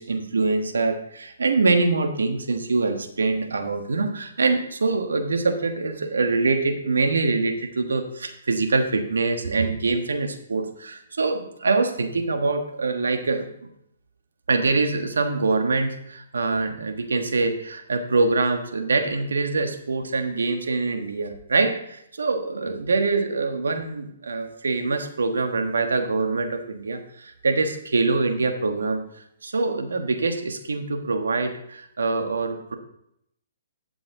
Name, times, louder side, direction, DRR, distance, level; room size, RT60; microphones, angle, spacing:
voice 1, 0.0-13.5 14.5-29.0 29.4-32.7, right 3 dB, 85° right, 6 dB, 1.4 m, -24 dB
11.5 x 7.0 x 3.8 m, 0.74 s
hypercardioid pair, 145°, 0 cm